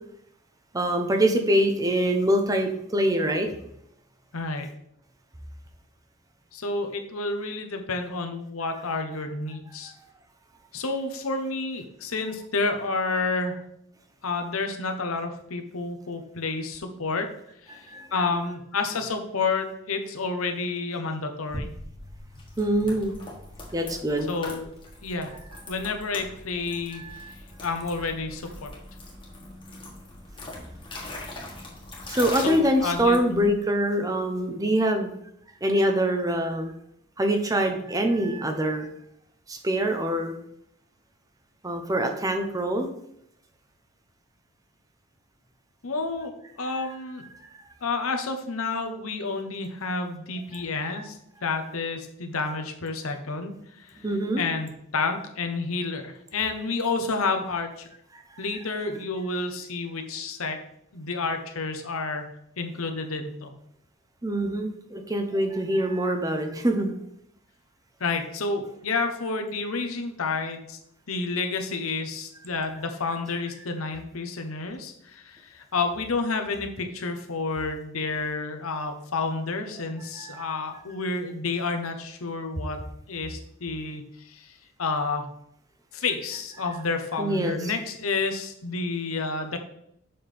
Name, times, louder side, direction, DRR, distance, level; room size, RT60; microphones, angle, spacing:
voice 1, 0.7-3.5 17.7-18.1 22.6-23.1 23.7-24.3 26.9-27.3 32.1-35.1 35.6-36.7 37.2-38.9 39.5-40.4 41.6-42.9 50.5-51.1 54.0-54.4 58.1-58.2 64.2-66.9 80.2-80.5 87.2-87.7, right 1 dB, 15° right, 4 dB, 0.7 m, -25 dB
voice 2, 4.3-4.7 6.5-9.9 10.7-13.6 14.2-17.3 17.6-21.7 24.3-24.7 25.0-25.3 25.7-28.7 32.4-33.5 45.8-47.2 47.8-54.1 54.4-57.8 58.4-60.6 60.9-62.3 62.6-63.5 68.0-70.8 71.1-82.8 83.1-85.3 85.9-89.6, left 3 dB, 85° left, 5 dB, 0.9 m, -30 dB
sound 1, 21.5-33.5, left 2 dB, 25° left, 1.5 m, -41 dB
6.9 x 5.8 x 3.4 m, 0.75 s
head